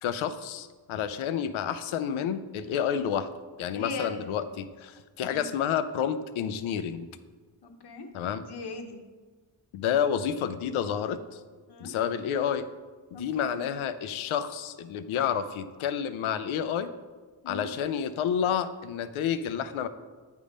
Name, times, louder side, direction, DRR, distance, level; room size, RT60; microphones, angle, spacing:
voice 1, 0.0-3.3 3.6-7.1 8.1-8.4 9.7-11.4 11.8-12.6 13.2-16.9 17.5-19.9, left 8 dB, 90° left, 12 dB, 0.6 m, -29 dB
voice 2, 3.7-4.2 5.2-5.5 7.6-8.1 8.4-9.0 11.7-11.9 13.1-13.6 17.4-17.7, left 3 dB, 55° left, 5 dB, 1.0 m, -39 dB
8.3 x 3.6 x 5.0 m, 1.4 s
cardioid pair, 75°, 47 cm